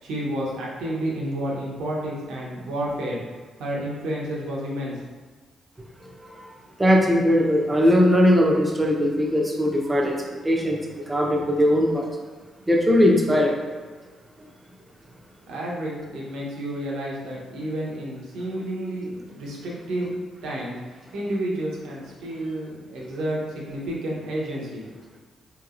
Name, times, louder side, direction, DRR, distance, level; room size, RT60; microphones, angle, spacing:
voice 1, 0.0-3.2 3.6-5.0 15.5-20.1 20.4-20.7 21.1-24.8, right 1 dB, 75° right, -4 dB, 0.9 m, -30 dB
voice 2, 6.8-12.1 12.7-13.5, equal, 20° right, 0 dB, 0.8 m, -20 dB
3.9 x 2.9 x 2.5 m, 1.4 s
supercardioid pair, 50°, 0 cm